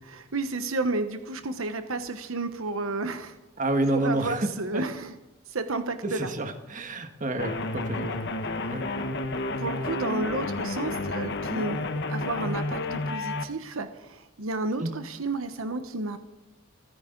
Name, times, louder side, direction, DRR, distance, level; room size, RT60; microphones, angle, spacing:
voice 1, 0.1-3.4 3.9-5.1 5.5-6.3 9.6-16.2, right 3 dB, 80° right, 8 dB, 1.2 m, -31 dB
voice 2, 3.6-4.5 4.7-4.8 6.0-8.2 8.7-8.8 14.8-14.9, right 1 dB, 40° right, 6 dB, 1.7 m, -28 dB
sound 1, 7.4-13.4, left 2 dB, 55° left, 1.2 m, -31 dB
29.0 x 9.9 x 4.0 m, 0.99 s
head